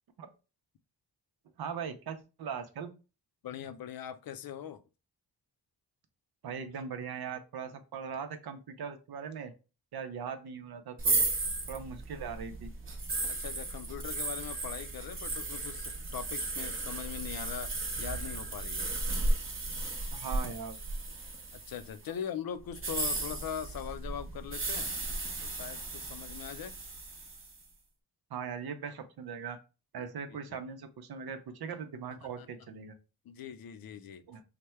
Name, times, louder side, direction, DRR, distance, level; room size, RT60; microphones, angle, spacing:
voice 1, 1.6-2.9 6.4-9.5 9.9-11.2 11.7-12.7 20.1-20.8 22.1-22.2 28.3-29.6 29.9-32.9 34.3-34.4, right 6 dB, 70° right, 0.7 m, -40 dB
voice 2, 3.4-4.8 13.3-18.9 21.5-24.9 25.4-26.8 30.0-30.4 32.1-32.5 33.2-34.3, left 9 dB, 65° left, 0.5 m, -41 dB
sound 1, 11.0-22.0 22.7-27.5, right 2 dB, 35° right, 0.8 m, -35 dB
3.3 x 2.2 x 4.3 m
wide cardioid pair, 115°, 39 cm